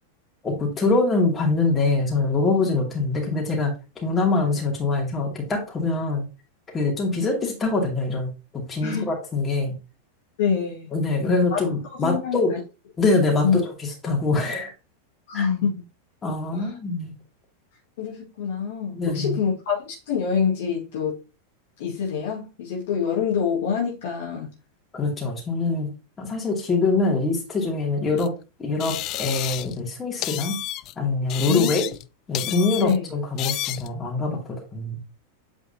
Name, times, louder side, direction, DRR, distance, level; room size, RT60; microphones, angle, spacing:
voice 1, 0.4-6.2 6.7-9.7 10.9-12.5 13.0-14.7 15.3-15.5 16.2-17.1 19.0-19.4 24.9-25.9 26.2-28.3 28.6-30.6 31.0-31.9 32.3-35.0, left 3 dB, 20° left, 2.5 m, -24 dB
voice 2, 10.4-10.9 11.5-11.7 11.9-12.6 13.4-13.6 15.3-15.7 16.5-16.7 18.0-21.2 21.8-24.5 31.5-31.7 32.8-33.0, left 6 dB, 55° left, 1.9 m, -25 dB
sound 1, 28.2-28.3 28.8-29.8 30.2-30.9 31.3-32.1 32.3-33.0 33.4-33.9, left 15 dB, 40° left, 0.3 m, -31 dB
8.0 x 4.8 x 2.8 m
figure-of-eight pair, 90°, 0 cm